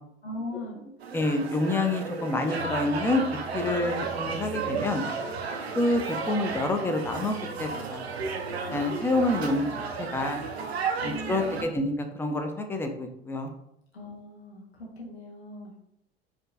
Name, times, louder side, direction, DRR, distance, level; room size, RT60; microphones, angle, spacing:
voice 1, 0.2-0.8 11.0-11.7 13.9-15.8, left 1 dB, 85° left, -4 dB, 0.8 m, -39 dB
sound 1, 1.0-11.6, right 4 dB, 85° right, 0.5 m, -33 dB
voice 2, 1.1-3.3 3.5-5.0 5.8-8.0 8.7-9.7 10.0-10.4 11.0-11.9 12.2-13.5, left 2 dB, 10° left, 5 dB, 0.3 m, -27 dB
4.7 x 2.2 x 2.3 m, 0.79 s
figure-of-eight pair, 70°, 31 cm